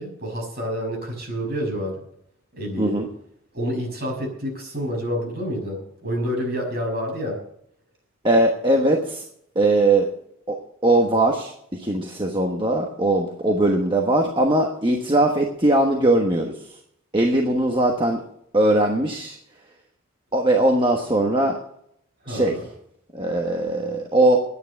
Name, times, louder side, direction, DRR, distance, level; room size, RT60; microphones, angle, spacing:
voice 1, 0.0-2.0 2.5-3.0 3.5-7.4 22.2-22.6, equal, 45° right, 0 dB, 6.0 m, -28 dB
voice 2, 2.8-3.1 8.2-9.2 9.5-10.1 10.5-16.8 17.1-18.2 18.5-19.4 20.3-21.6 22.3-22.6 23.1-24.4, right 1 dB, 25° right, 1 dB, 1.2 m, -20 dB
11.0 x 9.7 x 7.7 m, 0.72 s
head